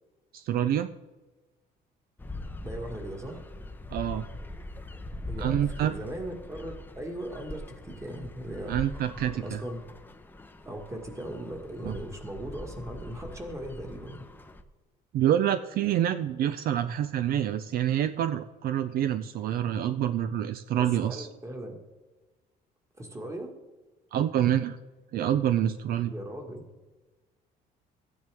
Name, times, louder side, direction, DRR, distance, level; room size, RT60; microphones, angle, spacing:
voice 1, 0.3-0.9 3.9-4.3 5.4-5.9 8.7-9.6 11.8-11.9 15.1-21.3 24.1-24.8 25.1-26.1, right 10 dB, 60° right, 11 dB, 0.4 m, -27 dB
sound 1, 2.2-14.6, left 1 dB, 10° left, 0.6 m, -42 dB
voice 2, 2.6-3.4 5.3-8.8 9.3-9.9 10.7-14.3 20.8-21.8 23.0-23.5 26.1-26.7, right 1 dB, 15° right, 3 dB, 1.7 m, -38 dB
14.5 x 9.3 x 3.5 m, 1.2 s
cardioid pair, 110°, 17 cm